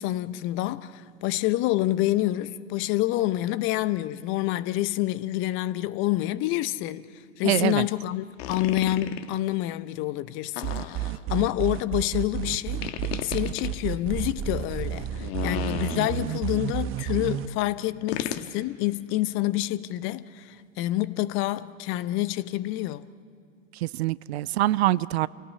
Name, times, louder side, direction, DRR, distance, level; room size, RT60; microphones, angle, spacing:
voice 1, 0.0-7.0 7.4-12.8 13.2-23.0, left 15 dB, 30° left, 0.6 m, -27 dB
voice 2, 7.4-7.9 23.8-25.3, right 16 dB, 55° right, 0.5 m, -24 dB
sound 1, 8.4-9.4 10.6-11.4 12.8-13.7 15.2-16.4 18.1-18.5, left 11 dB, 50° left, 1.3 m, -34 dB
sound 2, 10.6-17.5, right 12 dB, 30° right, 1.1 m, -30 dB
28.0 x 17.5 x 8.4 m
hypercardioid pair, 105°, 39 cm